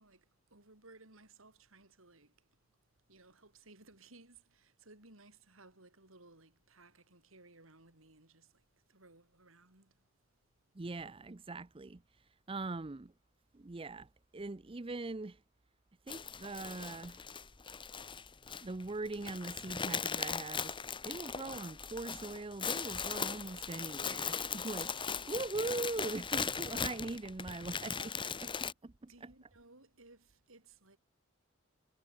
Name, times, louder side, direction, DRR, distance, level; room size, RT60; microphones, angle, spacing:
voice 1, 0.0-2.6 3.1-10.1 27.7-28.6 29.1-31.0, right 2 dB, 80° right, 5.5 m, -60 dB
voice 2, 10.7-13.1 13.5-15.4 16.1-17.3 18.6-28.1 28.4-29.3, right 3 dB, 25° right, 0.6 m, -41 dB
sound 1, 16.1-28.7, left 6 dB, 25° left, 1.1 m, -39 dB
head